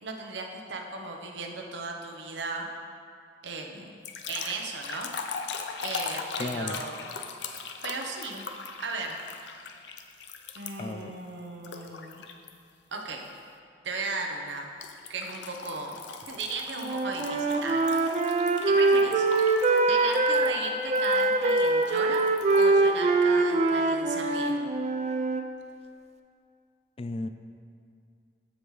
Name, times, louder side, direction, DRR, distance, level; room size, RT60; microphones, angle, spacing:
voice 1, 0.0-2.7 3.4-4.0 4.3-5.1 5.8-7.1 7.8-8.5 8.8-9.2 10.5-12.2 12.9-13.3 13.8-14.7 15.1-16.0 16.3-18.1 18.6-19.3 19.9-22.3 22.6-24.6, right 3 dB, 80° right, 2 dB, 0.9 m, -36 dB
sound 1, 4.0-11.0 11.6-12.5 13.0-13.3 14.8-22.7, left 5 dB, 75° left, 0.6 m, -40 dB
voice 2, 6.4-6.8 10.8-11.1 27.0-27.3, left 2 dB, 30° left, 10 dB, 0.3 m, -34 dB
Wind instrument woodwind instrument, 16.8-20.6 20.9-25.4, right 3 dB, 40° right, 0.4 m, -24 dB
14.5 x 5.3 x 3.2 m, 2.4 s
head